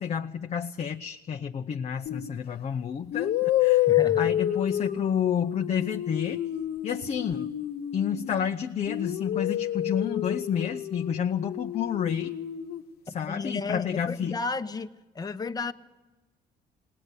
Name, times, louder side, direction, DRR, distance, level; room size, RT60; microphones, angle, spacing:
voice 1, 0.0-3.9 4.2-6.4 6.8-7.6 7.9-12.3 13.1-14.4, left 8 dB, 40° left, 5 dB, 0.7 m, -30 dB
sound 1, 2.1-2.3 3.1-8.5 8.9-12.8, left 13 dB, 65° left, 0.9 m, -29 dB
voice 2, 3.9-4.3 13.1-14.9 15.1-15.7, left 4 dB, 20° left, 8 dB, 1.0 m, -33 dB
19.5 x 18.5 x 8.3 m, 1.1 s
cardioid pair, 110°, 17 cm